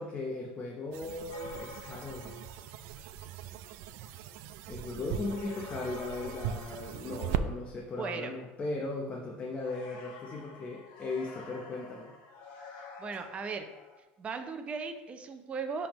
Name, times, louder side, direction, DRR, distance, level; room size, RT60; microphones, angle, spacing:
voice 1, 0.0-2.5 4.7-12.1, left 2 dB, 30° left, 0 dB, 0.7 m, -37 dB
sound 1, 0.9-7.5, right 8 dB, 70° right, 0.4 m, -39 dB
sound 2, 1.3-3.0 5.1-7.7 9.6-14.0, left 4 dB, 85° left, 1.3 m, -49 dB
voice 2, 4.9-5.3 8.0-8.3 13.0-13.7 14.2-15.9, right 5 dB, 25° right, 6 dB, 0.6 m, -37 dB
10.0 x 3.5 x 3.0 m, 1.1 s
cardioid pair, 125°, 5 cm